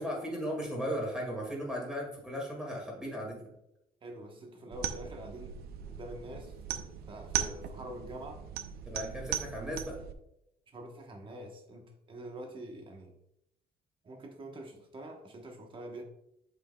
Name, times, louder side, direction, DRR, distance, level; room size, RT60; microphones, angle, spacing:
voice 1, 0.0-3.4 8.8-10.0, equal, 5° right, -2 dB, 2.0 m, -36 dB
voice 2, 4.0-5.6 5.8-8.4 10.7-13.1 14.0-16.0, right 1 dB, 30° right, 3 dB, 1.1 m, -45 dB
sound 1, 4.7-10.1, right 9 dB, 75° right, 0.6 m, -38 dB
7.5 x 5.8 x 2.3 m, 0.81 s
cardioid pair, 150°, 16 cm